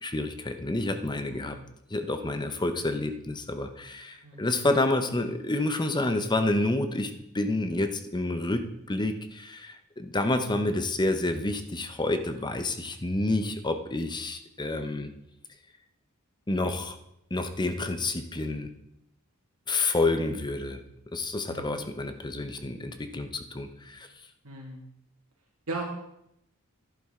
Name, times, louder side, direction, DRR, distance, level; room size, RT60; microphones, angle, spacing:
voice 1, 0.0-1.6 1.9-15.1 16.5-17.0 17.3-18.7 19.7-20.8 21.1-24.1, left 2 dB, 20° left, 8 dB, 0.8 m, -29 dB
voice 2, 1.2-1.6 4.2-4.5 21.5-21.8 24.4-24.8 25.7-25.8, right 3 dB, 70° right, -1 dB, 2.1 m, -38 dB
11.5 x 11.0 x 3.7 m, 0.80 s
head